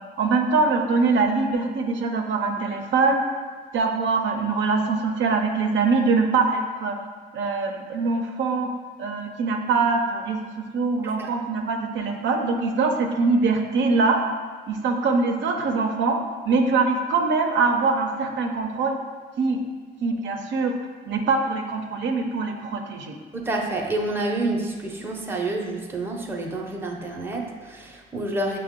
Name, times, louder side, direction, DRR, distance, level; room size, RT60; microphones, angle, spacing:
voice 1, 0.2-3.2 3.7-7.0 7.3-8.7 9.0-10.4 10.7-14.2 14.7-16.2 16.5-18.9 19.4-19.6 20.0-20.7 21.1-23.2, right 4 dB, 70° right, 3 dB, 0.5 m, -23 dB
voice 2, 23.3-28.6, right 2 dB, 10° right, -1 dB, 0.6 m, -28 dB
6.3 x 2.1 x 3.6 m, 1.5 s
cardioid pair, 90°, 20 cm